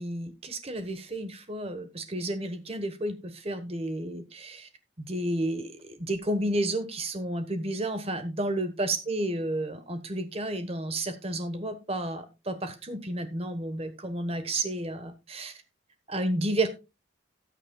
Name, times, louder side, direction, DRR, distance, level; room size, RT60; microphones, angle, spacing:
voice 1, 0.0-4.7 5.0-15.6 16.1-16.7, right 1 dB, 30° right, 8 dB, 1.2 m, -31 dB
18.0 x 6.5 x 2.3 m, 0.27 s
head